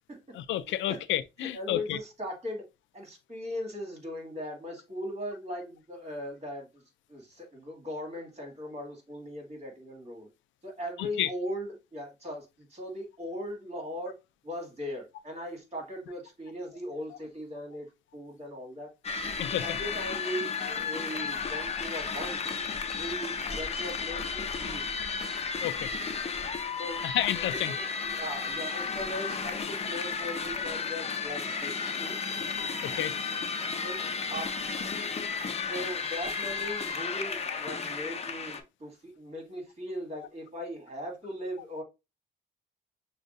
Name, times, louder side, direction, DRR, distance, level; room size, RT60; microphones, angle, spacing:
voice 1, 0.3-2.0 11.2-11.3 19.4-19.6 20.6-20.7 25.6-25.9 27.0-27.7 32.8-33.1, left 12 dB, 75° left, 0.4 m, -30 dB
voice 2, 1.4-2.6 2.9-6.8 7.1-10.3 10.6-12.5 12.7-14.2 14.4-17.9 18.1-18.9 19.5-22.4 23.0-24.8 26.8-27.0 27.3-32.2 33.8-34.9 35.7-41.8, equal, 35° right, 2.1 m, -39 dB
sound 1, 19.0-38.6, left 5 dB, 30° left, 0.7 m, -33 dB
6.3 x 2.3 x 2.6 m
cardioid pair, 90°, 20 cm